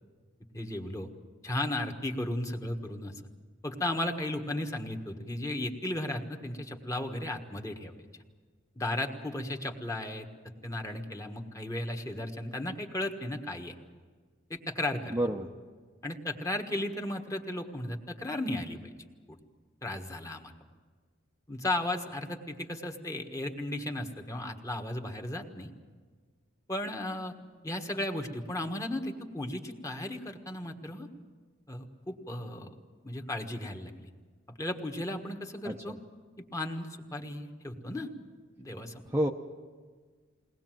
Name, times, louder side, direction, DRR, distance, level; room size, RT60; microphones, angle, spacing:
voice 1, 0.5-1.1 1.4-3.1 3.6-7.9 8.8-10.3 10.6-13.7 14.5-15.2 16.0-18.9 19.3-19.4 19.8-20.5 21.5-25.7 26.7-27.3 27.6-31.1 31.7-32.7 33.0-34.1 34.6-35.9 36.5-38.1 38.6-39.0, left 1 dB, 15° left, 3 dB, 1.5 m, -35 dB
voice 2, 15.1-15.5 35.6-36.0 39.1-39.3, right 1 dB, 15° right, 2 dB, 0.7 m, -29 dB
22.0 x 19.0 x 7.7 m, 1.5 s
head